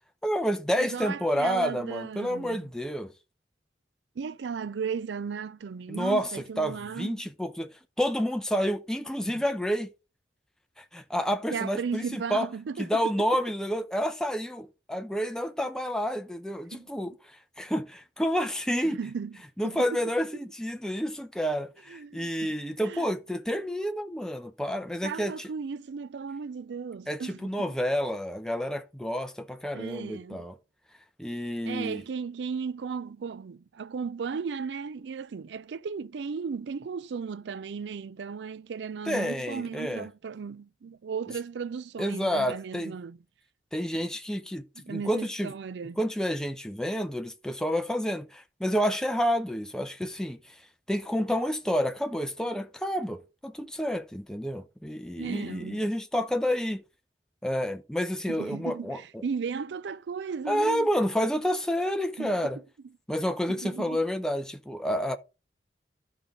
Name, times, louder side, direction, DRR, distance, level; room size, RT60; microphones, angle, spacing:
voice 1, 0.2-3.1 5.9-7.7 8.0-9.9 10.8-12.5 12.8-19.0 19.6-25.5 27.1-30.6 31.2-32.0 39.1-40.1 42.0-42.9 43.7-45.5 46.0-50.6 50.9-56.8 57.4-59.2 60.5-62.6 63.1-65.2, equal, 5° left, 0.7 m, -29 dB
voice 2, 0.8-2.7 4.2-7.2 9.3-9.4 11.5-13.0 16.7-16.9 18.8-19.4 19.6-20.0 20.3-20.4 21.9-22.5 22.8-23.1 25.0-27.7 29.7-30.5 31.6-43.2 44.8-46.0 55.2-55.8 58.3-60.9 62.2-62.3 63.6-64.0, right 5 dB, 85° right, 0.4 m, -35 dB
12.5 x 5.4 x 3.7 m
head